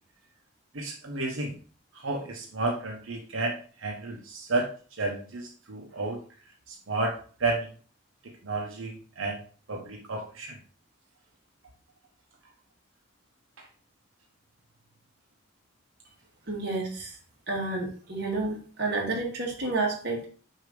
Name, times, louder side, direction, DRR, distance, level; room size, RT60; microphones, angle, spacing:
voice 1, 0.7-1.6 1.9-4.7 5.0-6.2 6.7-7.7 8.2-9.4 9.7-10.6 13.6-13.7, right 2 dB, 90° right, 1 dB, 1.0 m, -32 dB
voice 2, 16.5-17.2 17.5-20.3, right 3 dB, 55° right, -1 dB, 1.8 m, -30 dB
6.4 x 2.8 x 5.1 m, 0.40 s
head